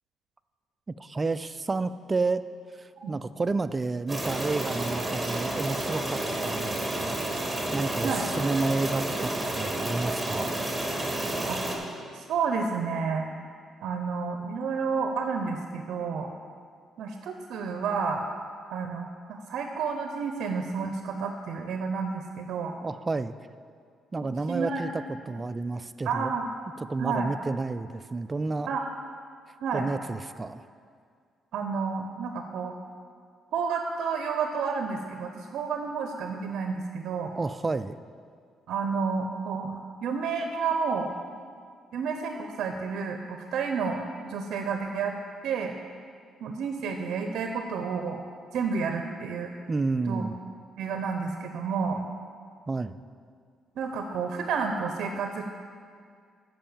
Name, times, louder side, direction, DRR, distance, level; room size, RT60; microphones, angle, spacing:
voice 1, 0.9-2.5 2.7-7.2 7.7-10.5 22.8-23.3 24.1-26.3 26.8-28.7 29.7-30.7 37.3-38.0 49.7-50.3 52.7-53.0, right 3 dB, 25° right, 13 dB, 0.3 m, -30 dB
sound 1, 4.1-11.8, right 1 dB, 10° right, 1.6 m, -30 dB
voice 2, 12.1-13.3 13.8-16.3 17.0-18.2 18.7-22.7 24.2-24.8 26.0-26.5 27.0-27.3 28.7-28.9 29.6-29.8 31.5-32.7 33.5-37.3 38.7-41.1 41.9-45.1 45.4-45.7 46.4-48.2 48.5-49.5 50.1-50.3 50.8-52.0 53.8-55.4, right 5 dB, 75° right, 5 dB, 0.6 m, -30 dB
8.7 x 5.4 x 7.1 m, 2.1 s
cardioid pair, 90°, 0 cm